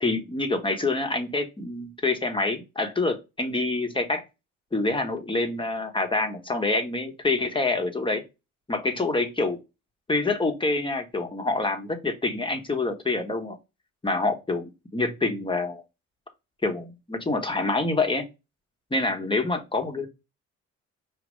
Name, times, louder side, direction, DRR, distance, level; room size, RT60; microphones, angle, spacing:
voice 1, 0.0-4.2 4.7-8.2 8.7-9.6 10.1-13.6 14.0-15.8 16.6-18.3 18.9-20.1, left 2 dB, 15° left, 1.1 m, -26 dB
5.1 x 2.8 x 3.1 m
cardioid pair, 90°, 30 cm